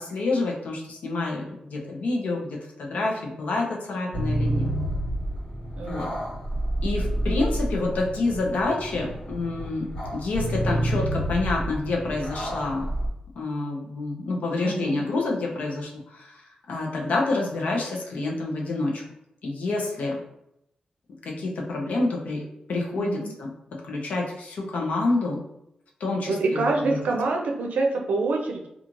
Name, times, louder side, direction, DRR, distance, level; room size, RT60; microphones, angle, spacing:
voice 1, 0.0-4.7 5.8-6.1 6.8-12.9 13.4-16.4 16.7-19.0 19.4-20.2 21.2-23.5 23.9-25.4 26.0-27.0, left 2 dB, 75° left, -1 dB, 0.6 m, -28 dB
sound 1, 4.1-13.1, right 1 dB, 55° left, 1.4 m, -29 dB
voice 2, 5.8-6.2 14.6-15.0 23.0-23.3 26.2-28.7, right 3 dB, 80° right, 1 dB, 0.5 m, -26 dB
2.5 x 2.4 x 3.0 m, 0.81 s
wide cardioid pair, 170°, 3 cm